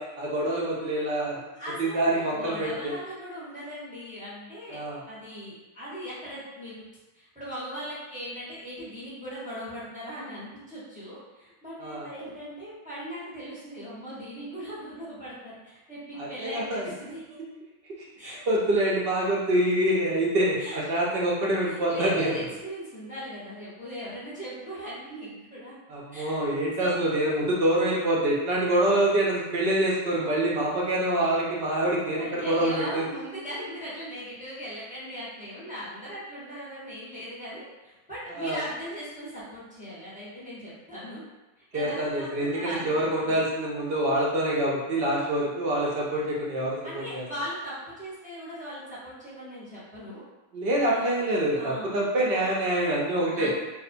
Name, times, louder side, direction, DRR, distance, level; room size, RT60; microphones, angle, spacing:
voice 1, 0.0-1.4 1.8-2.9 4.7-5.0 11.8-12.1 16.2-16.9 18.2-22.4 25.9-33.1 38.3-38.6 41.7-47.2 50.5-53.5, right 1 dB, 70° right, -4 dB, 0.5 m, -26 dB
voice 2, 1.5-4.8 5.1-6.8 7.1-17.4 18.2-18.4 20.6-20.8 21.0-21.3 21.7-25.7 26.1-26.5 26.8-27.0 32.2-41.2 41.6-43.4 46.8-50.2 50.9-51.0 51.5-52.1 53.3-53.5, equal, 10° right, -10 dB, 0.4 m, -39 dB
2.5 x 2.1 x 2.5 m, 1.1 s
omnidirectional pair, 1.5 m